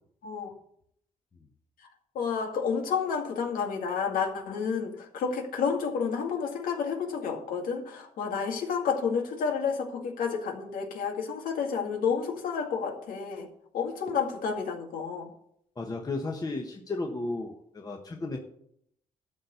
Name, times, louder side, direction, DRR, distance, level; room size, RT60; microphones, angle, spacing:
voice 1, 0.2-0.5 2.1-13.5 13.7-15.3, left 6 dB, 85° left, 3 dB, 2.0 m, -30 dB
voice 2, 15.8-18.4, left 2 dB, 25° left, 2 dB, 1.2 m, -34 dB
12.5 x 4.3 x 8.2 m, 0.70 s
cardioid pair, 100°, 14 cm